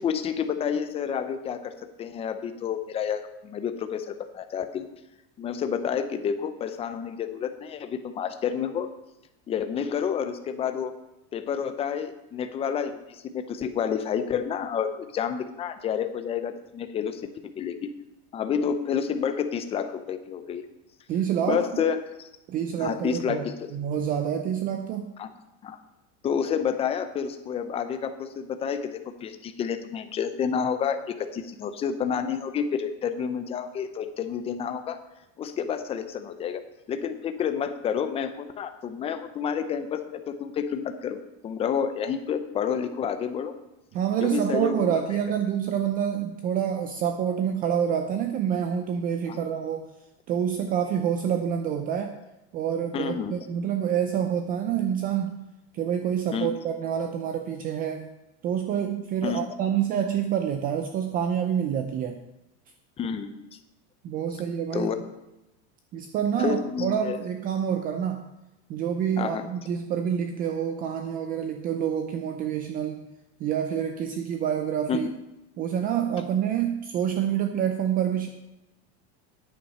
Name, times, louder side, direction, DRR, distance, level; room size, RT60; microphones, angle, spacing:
voice 1, 0.0-1.7 2.0-4.9 5.4-8.9 9.5-10.9 11.3-17.9 18.3-20.6 21.5-22.3 22.8-23.7 25.2-25.3 25.6-25.8 26.2-35.0 35.4-36.6 36.9-43.5 44.2-45.0 49.3-49.4 52.9-53.3 56.3-56.6 59.2-59.5 63.0-63.3 64.7-65.0 66.4-67.2 69.2-69.4 74.9-75.1, left 7 dB, 20° left, 9 dB, 0.6 m, -29 dB
voice 2, 21.1-21.8 22.5-23.5 23.7-25.1 43.9-49.9 50.3-52.2 52.5-55.4 55.7-58.1 58.4-62.2 64.0-64.9 65.9-68.2 68.7-73.0 73.4-75.1 75.6-78.3, right 9 dB, 25° right, 6 dB, 0.5 m, -27 dB
9.9 x 8.8 x 5.5 m, 0.94 s
supercardioid pair, 170°, 33 cm